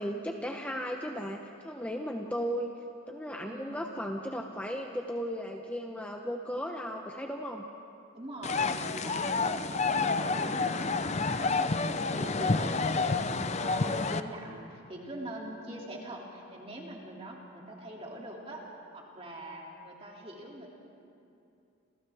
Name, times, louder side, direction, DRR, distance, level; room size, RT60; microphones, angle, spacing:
voice 1, 0.0-2.7 3.1-7.6, equal, 5° left, 1 dB, 0.8 m, -36 dB
voice 2, 3.3-3.8 8.1-18.7 18.9-20.7, right 1 dB, 25° right, -2 dB, 2.7 m, -43 dB
sound 1, 8.4-14.2, left 3 dB, 30° left, 0.5 m, -29 dB
30.0 x 27.5 x 3.5 m, 2.6 s
head